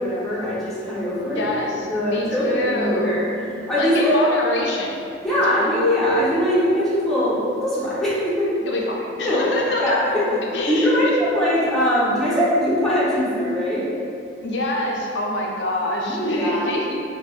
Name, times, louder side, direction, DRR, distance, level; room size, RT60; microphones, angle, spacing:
voice 1, 0.0-1.5 1.9-3.3 3.7-4.2 5.2-8.7 9.2-9.4 9.8-10.4 10.7-13.9 16.0-16.7, equal, ahead, -11 dB, 0.7 m, -21 dB
voice 2, 1.3-3.1 3.8-4.9 5.5-5.7 8.6-9.9 10.3-11.1 14.4-16.9, left 2 dB, 65° left, -1 dB, 0.4 m, -26 dB
3.2 x 2.1 x 2.3 m, 2.5 s
head